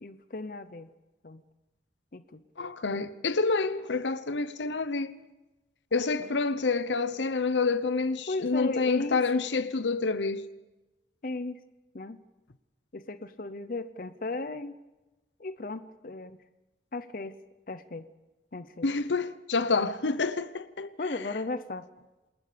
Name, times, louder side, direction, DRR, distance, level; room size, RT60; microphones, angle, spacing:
voice 1, 0.0-0.9 1.2-1.4 2.1-2.4 6.2-6.3 8.3-9.2 11.2-11.6 11.9-12.2 12.9-14.8 15.4-16.4 16.9-17.3 17.7-18.1 18.5-18.9 21.0-21.9, left 2 dB, 50° left, 0.7 m, -36 dB
voice 2, 2.6-5.2 5.9-10.4 18.8-20.9, left 4 dB, 85° left, 0.8 m, -28 dB
28.0 x 20.5 x 5.1 m
head